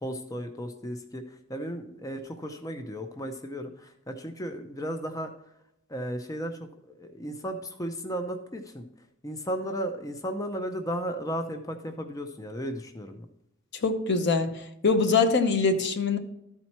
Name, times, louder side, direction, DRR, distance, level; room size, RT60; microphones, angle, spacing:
voice 1, 0.0-5.3 5.9-8.8 9.2-13.3, equal, 15° left, 0.6 m, -35 dB
voice 2, 13.8-14.5 14.8-16.2, left 4 dB, 55° left, 0.8 m, -23 dB
13.0 x 4.5 x 4.2 m
head